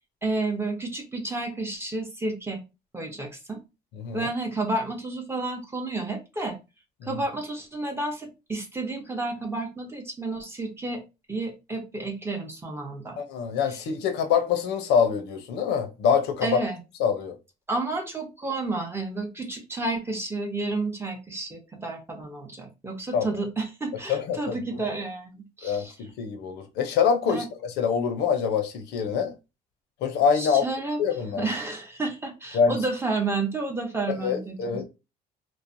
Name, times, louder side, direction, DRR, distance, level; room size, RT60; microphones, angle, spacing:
voice 1, 0.2-2.6 2.9-3.6 4.1-6.6 7.0-11.0 11.3-13.2 16.4-16.8 17.7-26.0 27.3-27.4 30.3-31.0 31.4-34.9, right 2 dB, 15° right, 0.6 m, -31 dB
voice 2, 3.9-4.3 7.0-7.2 13.2-16.6 17.0-17.4 23.1-23.3 24.1-24.6 25.6-29.3 30.0-30.6 31.0-31.4 32.5-32.7 34.1-34.9, left 7 dB, 80° left, 0.6 m, -25 dB
3.1 x 2.1 x 2.6 m
cardioid pair, 110°, 17 cm